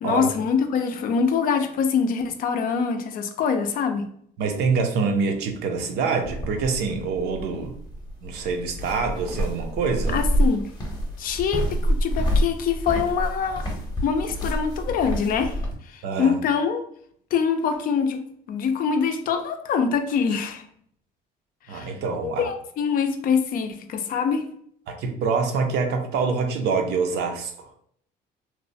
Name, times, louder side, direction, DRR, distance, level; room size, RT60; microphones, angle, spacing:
voice 1, 0.0-4.1 10.1-10.7 11.2-13.7 14.0-15.5 15.9-16.8 17.3-20.6 21.7-21.9 22.2-24.4, left 6 dB, 55° left, 7 dB, 0.4 m, -24 dB
voice 2, 4.4-7.8 8.2-10.2 16.0-16.4 21.7-22.4 24.9-27.5, right 5 dB, 80° right, 4 dB, 0.5 m, -25 dB
sound 1, 6.2-15.7, equal, 25° left, 0.7 m, -27 dB
3.0 x 2.1 x 2.6 m, 0.66 s
cardioid pair, 110°, 17 cm